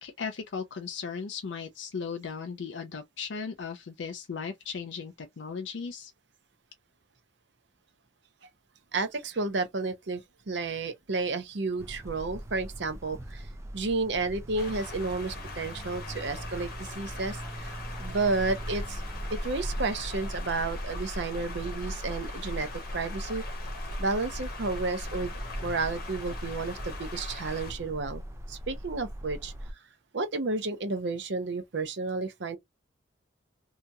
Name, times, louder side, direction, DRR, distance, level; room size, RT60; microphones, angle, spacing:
voice 1, 0.0-6.1, left 5 dB, 70° left, 0.5 m, -37 dB
voice 2, 8.9-13.5 13.7-19.0 19.3-23.4 24.0-28.2 28.5-29.5 30.1-32.6, right 3 dB, 60° right, 0.6 m, -32 dB
sound 1, 11.8-29.7, equal, 15° right, 0.3 m, -39 dB
sound 2, 14.6-27.7, left 4 dB, 50° left, 0.9 m, -43 dB
2.8 x 2.7 x 2.3 m
head